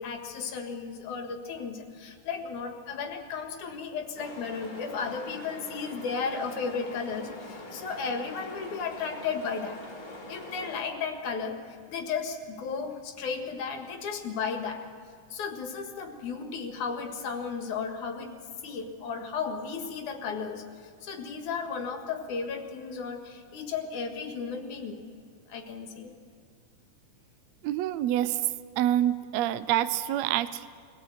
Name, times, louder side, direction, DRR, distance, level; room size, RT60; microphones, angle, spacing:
voice 1, 0.0-9.8 10.3-11.6 11.9-14.8 15.3-18.3 18.6-25.0 25.5-26.1, left 5 dB, 80° left, 4 dB, 3.2 m, -34 dB
sound 1, 4.2-10.8, left 1 dB, 30° left, 2.7 m, -44 dB
voice 2, 27.6-28.4 28.8-30.7, right 12 dB, 75° right, 13 dB, 1.7 m, -27 dB
23.5 x 17.0 x 8.1 m, 2.2 s
omnidirectional pair, 3.5 m